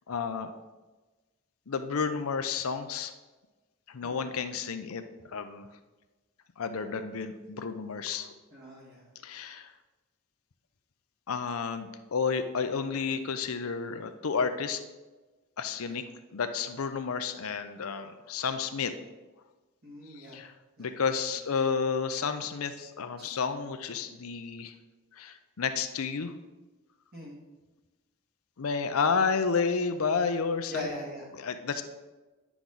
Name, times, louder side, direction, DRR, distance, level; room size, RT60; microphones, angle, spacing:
voice 1, 0.1-0.5 1.7-3.1 3.9-5.0 5.3-5.7 6.6-8.3 9.2-9.7 11.3-14.8 15.6-16.0 16.3-18.9 20.2-20.5 20.8-24.7 25.1-26.3 28.6-30.9 31.4-31.8, left 5 dB, 70° left, 8 dB, 0.6 m, -31 dB
voice 2, 8.5-9.1 15.9-16.0 19.8-20.4 20.8-21.1 23.2-23.4 27.1-27.4 30.7-31.3, equal, 50° right, -4 dB, 2.3 m, -41 dB
10.0 x 6.0 x 3.9 m, 1.2 s
head